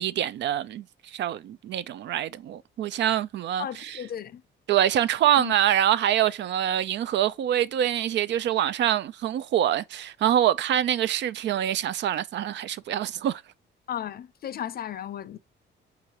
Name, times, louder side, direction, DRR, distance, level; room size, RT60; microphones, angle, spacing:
voice 1, 0.0-4.0 4.7-13.4, right 11 dB, 65° right, 0.4 m, -25 dB
voice 2, 3.6-4.4 5.3-5.5 13.9-15.4, left 10 dB, 50° left, 0.6 m, -35 dB
4.7 x 3.7 x 2.9 m
cardioid pair, 90°, 20 cm